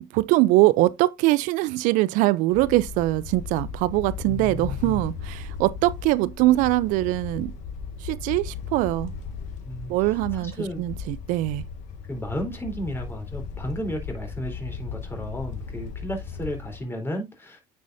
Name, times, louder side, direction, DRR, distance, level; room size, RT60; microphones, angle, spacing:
voice 1, 0.0-7.5 8.0-9.1 9.9-11.6, right 18 dB, 80° right, 0.5 m, -22 dB
sound 1, 2.5-16.8, left 6 dB, 65° left, 1.8 m, -36 dB
voice 2, 4.3-5.0 9.6-10.9 12.0-17.6, equal, 15° left, 3.8 m, -33 dB
9.4 x 5.6 x 2.6 m
cardioid pair, 105°, 13 cm